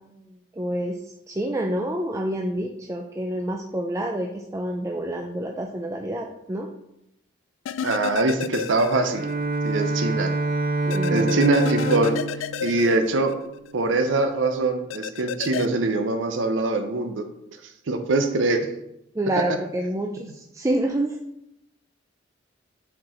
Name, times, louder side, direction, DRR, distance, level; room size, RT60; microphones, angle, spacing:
voice 1, 0.6-0.9 1.3-6.7 10.9-11.4 19.2-21.2, right 1 dB, 15° right, 2 dB, 0.4 m, -28 dB
sound 1, 7.7-9.3 9.7-9.8 10.9-13.7 14.9-15.7, left 7 dB, 70° left, 0.3 m, -31 dB
voice 2, 7.8-9.2 9.6-10.3 11.1-12.1 12.6-13.3 13.7-17.2 17.9-18.7, right 2 dB, 65° right, 5 dB, 0.6 m, -23 dB
Bowed string instrument, 9.0-13.9, right 2 dB, 45° right, 0.9 m, -27 dB
6.2 x 4.5 x 4.3 m, 0.82 s
head